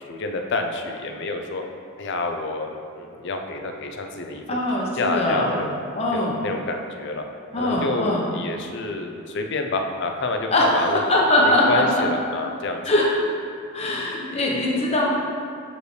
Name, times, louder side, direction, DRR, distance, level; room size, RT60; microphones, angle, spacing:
voice 1, 0.1-1.6 2.0-4.6 4.9-5.7 6.1-7.2 7.6-11.0 11.4-12.8, left 2 dB, 55° left, 4 dB, 0.5 m, -28 dB
voice 2, 4.5-5.5 5.9-6.4 7.5-8.2 10.5-10.7 11.1-12.0 12.8-13.0 13.7-15.1, left 1 dB, 30° left, -3 dB, 0.9 m, -21 dB
6.5 x 5.1 x 3.3 m, 2.4 s
head